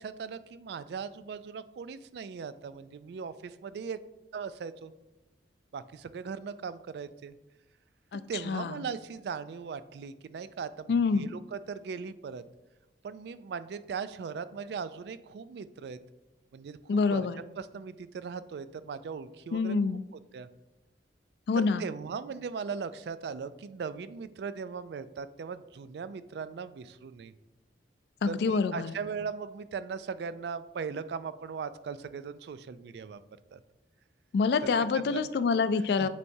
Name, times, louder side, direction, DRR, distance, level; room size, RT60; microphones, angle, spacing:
voice 1, 0.0-4.0 4.3-4.9 5.7-7.3 8.3-12.4 13.0-16.0 16.5-19.8 20.3-20.5 21.6-27.3 28.3-33.2 33.5-33.6 34.9-35.2 36.0-36.1, right 5 dB, 60° right, 14 dB, 0.3 m, -39 dB
voice 2, 8.1-8.7 10.9-11.3 16.9-17.4 19.5-20.0 21.5-21.8 28.2-28.9 34.3-36.1, left 4 dB, 65° left, 14 dB, 0.3 m, -27 dB
8.4 x 4.6 x 2.7 m, 1.0 s
head